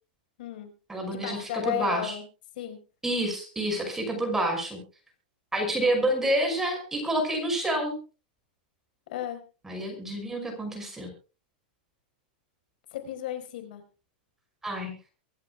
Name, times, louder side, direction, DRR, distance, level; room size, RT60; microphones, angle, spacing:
voice 1, 0.4-0.7 1.0-2.2 2.6-2.8 9.1-9.4 12.9-13.8, left 12 dB, 65° left, 6 dB, 4.6 m, -34 dB
voice 2, 0.9-2.1 3.0-4.8 5.5-8.0 9.7-11.1 14.6-14.9, right 1 dB, 5° right, 3 dB, 5.7 m, -28 dB
24.5 x 13.5 x 2.3 m, 0.34 s
supercardioid pair, 155°, 5 cm